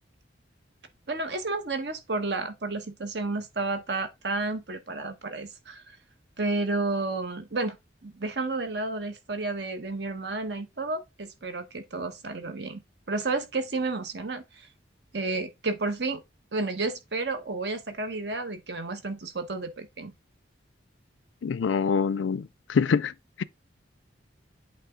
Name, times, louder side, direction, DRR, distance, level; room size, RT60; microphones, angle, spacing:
voice 1, 1.1-5.8 6.4-7.8 8.0-12.8 13.1-14.7 15.1-16.2 16.5-20.1, right 3 dB, 60° right, 1.1 m, -31 dB
voice 2, 21.4-23.1 23.4-23.5, left 5 dB, 80° left, 0.4 m, -25 dB
8.3 x 3.5 x 3.7 m
head